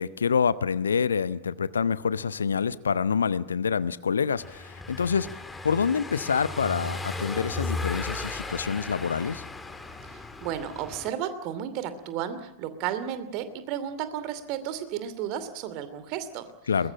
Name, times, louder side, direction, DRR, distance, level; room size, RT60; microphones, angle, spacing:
voice 1, 0.0-5.3 5.6-9.4 16.7-16.9, left 6 dB, 70° left, 17 dB, 0.8 m, -26 dB
Car passing by / Engine, 4.4-11.1, left 3 dB, 10° left, 2.4 m, -36 dB
voice 2, 10.1-16.5, right 9 dB, 40° right, 12 dB, 2.7 m, -33 dB
23.0 x 21.0 x 8.9 m, 0.86 s
figure-of-eight pair, 90°, 0 cm